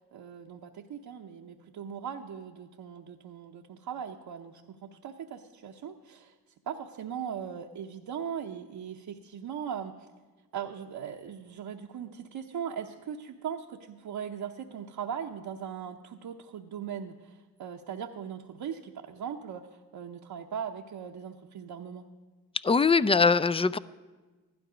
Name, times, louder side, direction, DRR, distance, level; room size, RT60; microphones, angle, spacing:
voice 1, 0.1-6.3 6.7-9.9 10.5-19.7 19.9-22.1, right 8 dB, 60° right, 1 dB, 0.9 m, -39 dB
voice 2, 22.6-23.8, left 4 dB, 15° left, 18 dB, 0.4 m, -22 dB
15.0 x 12.0 x 5.0 m, 1.3 s
supercardioid pair, 50°, 41 cm